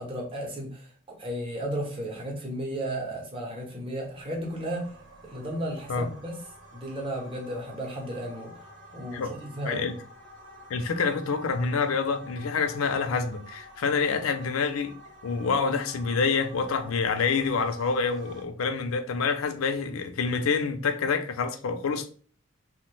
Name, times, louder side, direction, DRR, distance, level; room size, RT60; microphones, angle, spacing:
voice 1, 0.0-4.9 5.2-6.4 6.7-8.7 8.9-9.9, right 1 dB, 25° right, 0.7 m, -34 dB
sound 1, 4.0-18.4, equal, 60° right, 0.8 m, -49 dB
voice 2, 10.7-14.9 15.2-22.1, left 5 dB, 85° left, 0.4 m, -27 dB
3.0 x 2.1 x 3.1 m
head